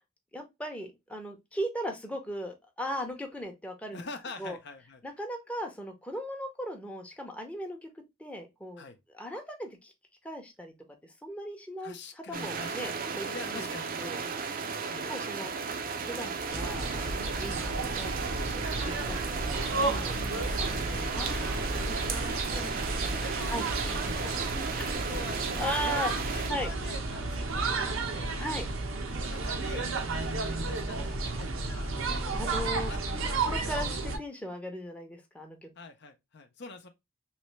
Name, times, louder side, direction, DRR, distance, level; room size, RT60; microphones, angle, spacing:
voice 1, 0.3-4.0 4.4-4.6 5.0-7.9 8.2-8.8 9.1-9.9 10.2-10.7 11.2-13.7 14.0-14.2 15.1-15.5 16.1-18.1 18.4-20.1 21.1-21.6 23.5-23.7 24.8-25.0 25.6-26.1 26.5-26.7 28.4-28.7 32.1-35.7, equal, 5° left, 0.7 m, -38 dB
voice 2, 3.9-5.0 8.8-9.0 11.8-13.0 13.3-14.4 14.9-15.1 17.1-17.2 19.6-28.4 29.1-29.9 30.2-31.9 32.9-33.4 35.8-36.9, left 3 dB, 60° left, 0.6 m, -45 dB
sound 1, 12.3-26.5, right 5 dB, 45° right, 0.5 m, -35 dB
sound 2, 16.5-34.2, right 3 dB, 85° right, 0.9 m, -32 dB
3.2 x 3.1 x 3.1 m
head